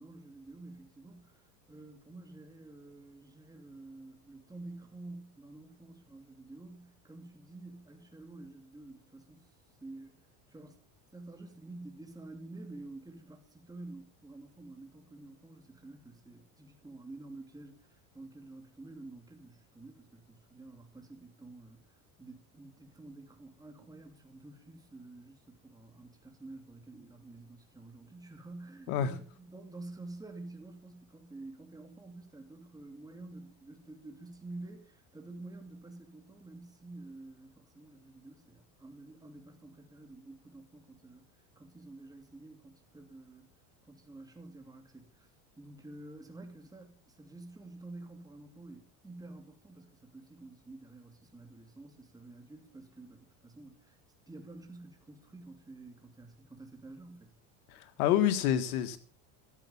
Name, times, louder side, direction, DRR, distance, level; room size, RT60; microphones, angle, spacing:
voice 1, 0.0-9.5 9.8-10.8 11.1-43.5 43.9-45.3 45.6-54.0 54.3-57.3, right 2 dB, 10° right, 2.8 m, -50 dB
voice 2, 57.7-59.0, left 10 dB, 80° left, 1.8 m, -28 dB
13.0 x 8.2 x 7.2 m
supercardioid pair, 120°, 43 cm